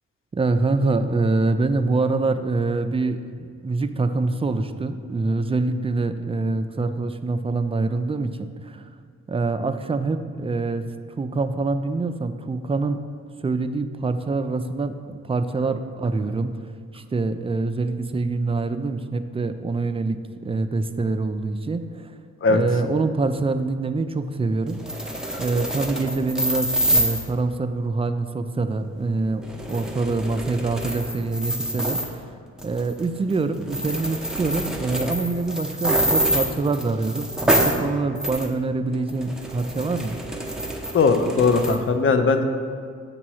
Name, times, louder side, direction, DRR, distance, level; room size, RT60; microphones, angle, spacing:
voice 1, 0.3-8.9 9.3-10.8 11.2-13.0 13.4-16.6 16.9-20.2 20.4-22.1 22.5-24.9 25.4-29.4 29.7-32.2 32.6-40.2, right 3 dB, 20° right, 9 dB, 0.4 m, -25 dB
sound 1, 24.7-27.3 29.4-32.1 32.6-33.0 33.3-33.4 33.7-37.8 38.1-38.5 38.9-41.8, right 1 dB, ahead, 0.8 m, -26 dB
voice 2, 40.9-42.4, left 4 dB, 45° left, 7 dB, 0.7 m, -19 dB
8.2 x 2.9 x 6.2 m, 2.1 s
cardioid pair, 65°, 29 cm